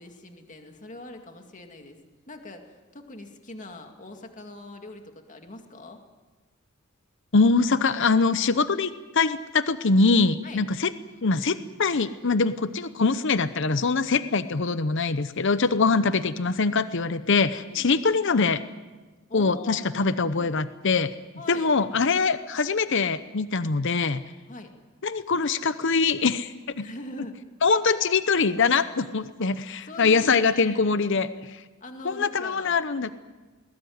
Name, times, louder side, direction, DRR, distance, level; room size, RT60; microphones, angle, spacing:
voice 1, 0.0-2.0 2.3-6.0 10.4-10.6 15.9-16.1 17.7-18.0 19.3-20.6 21.4-21.7 24.5-24.7 26.8-27.4 29.8-31.0 31.8-32.8, left 1 dB, 35° left, 4 dB, 2.3 m, -42 dB
voice 2, 7.3-10.9 11.2-18.6 19.3-21.1 21.5-24.2 25.0-26.5 27.6-31.6 32.0-33.1, left 4 dB, 60° left, 13 dB, 0.8 m, -23 dB
21.0 x 20.0 x 9.4 m, 1.3 s
head